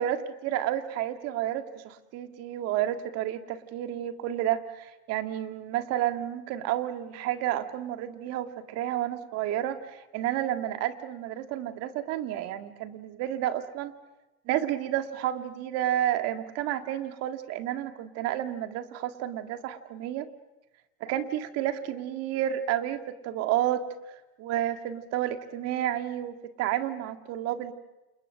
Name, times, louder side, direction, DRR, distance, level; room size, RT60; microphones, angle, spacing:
voice 1, 0.0-13.9 14.5-20.3 21.0-23.9 24.4-27.7, right 12 dB, 35° right, 8 dB, 1.9 m, -31 dB
29.0 x 29.0 x 6.3 m, 1.0 s
hypercardioid pair, 125°, 41 cm